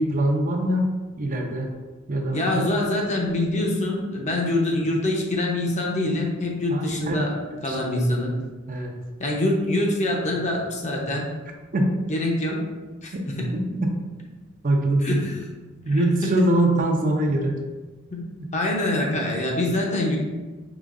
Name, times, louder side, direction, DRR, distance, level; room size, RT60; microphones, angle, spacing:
voice 1, 0.0-1.7 2.1-2.5 6.7-7.2 7.7-8.0 8.7-8.9 11.7-11.9 13.5-13.9 14.6-15.2 15.9-17.6, right 1 dB, 40° right, 2 dB, 0.5 m, -23 dB
voice 2, 2.3-7.3 7.6-8.3 9.2-11.3 12.1-12.6 13.0-13.4 15.0-15.3 15.9-16.3 18.1-20.2, left 1 dB, 35° left, -1 dB, 0.7 m, -25 dB
4.9 x 3.0 x 2.5 m, 1.2 s
head